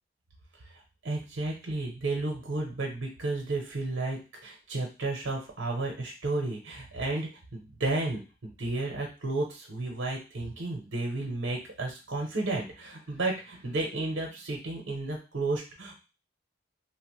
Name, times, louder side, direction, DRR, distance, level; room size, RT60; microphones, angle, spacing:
voice 1, 1.0-15.9, right 2 dB, 75° right, 0 dB, 0.7 m, -32 dB
2.9 x 2.1 x 3.0 m, 0.31 s
head